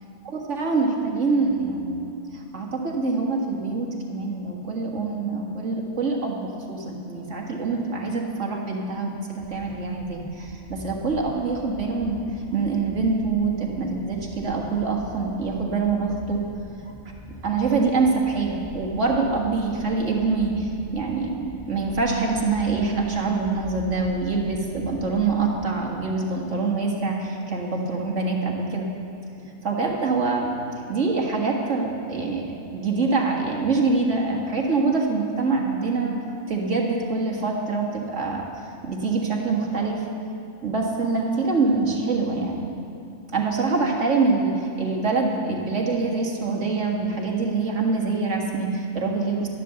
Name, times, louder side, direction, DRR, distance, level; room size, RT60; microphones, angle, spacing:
voice 1, 0.5-2.0 2.3-12.2 12.5-16.4 17.4-28.9 29.6-30.5 30.9-32.4 32.7-36.2 36.5-38.4 38.8-40.0 40.6-42.7 43.3-49.5, right 3 dB, 80° right, 0 dB, 2.1 m, -25 dB
sound 1, 9.3-25.7, equal, 5° left, 0.9 m, -43 dB
12.5 x 11.0 x 6.9 m, 2.7 s
omnidirectional pair, 1.3 m